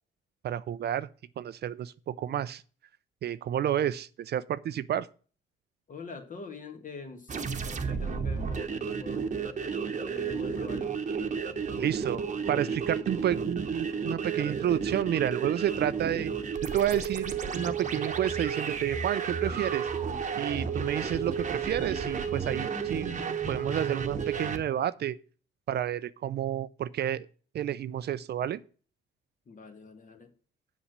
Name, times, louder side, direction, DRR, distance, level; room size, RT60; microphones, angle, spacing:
voice 1, 0.4-1.1 1.4-2.6 3.2-5.1 11.8-16.3 16.6-19.9 20.4-23.1 23.5-25.2 25.7-27.3 27.5-28.6, right 10 dB, 55° right, 0.5 m, -30 dB
voice 2, 5.9-9.3 10.1-10.9 29.5-30.3, left 4 dB, 40° left, 1.9 m, -44 dB
sound 1, 7.3-24.6, right 6 dB, 40° right, 1.0 m, -32 dB
7.1 x 6.3 x 6.7 m
cardioid pair, 90°, 20 cm